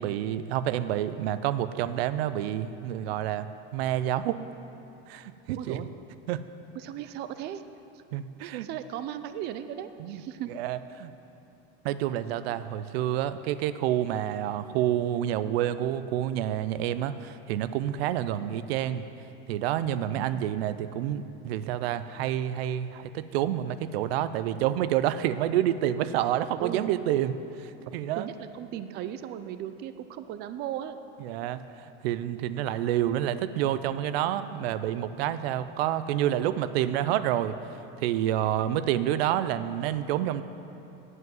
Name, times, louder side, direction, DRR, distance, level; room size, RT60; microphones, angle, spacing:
voice 1, 0.0-3.5 3.7-4.4 5.1-5.9 6.3-6.4 8.1-8.7 10.0-10.2 10.5-11.1 11.8-19.0 19.5-28.3 31.2-31.6 32.0-37.5 38.0-40.4, right 11 dB, 90° right, 13 dB, 0.5 m, -28 dB
voice 2, 5.6-5.9 6.7-7.6 7.9-8.0 8.4-10.5 20.1-20.4 26.6-27.0 28.1-31.0, right 11 dB, 35° right, 11 dB, 0.4 m, -37 dB
8.0 x 7.7 x 7.7 m, 2.8 s
supercardioid pair, 145°, 30 cm